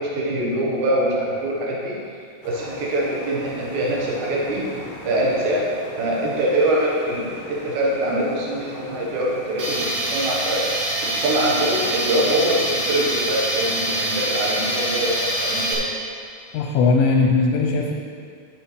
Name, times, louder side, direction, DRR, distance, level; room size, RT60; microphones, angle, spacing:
voice 1, 0.0-2.0 2.4-4.6 5.0-5.7 6.0-10.7 11.0-15.8, right 1 dB, 75° right, -4 dB, 1.7 m, -23 dB
sound 1, 2.4-9.9, left 3 dB, 70° left, 3.3 m, -39 dB
Tools, 9.6-15.7, right 1 dB, 60° right, 1.9 m, -25 dB
voice 2, 16.5-17.9, left 4 dB, 90° left, 0 dB, 3.2 m, -18 dB
11.0 x 7.9 x 3.2 m, 2.3 s
omnidirectional pair, 5.3 m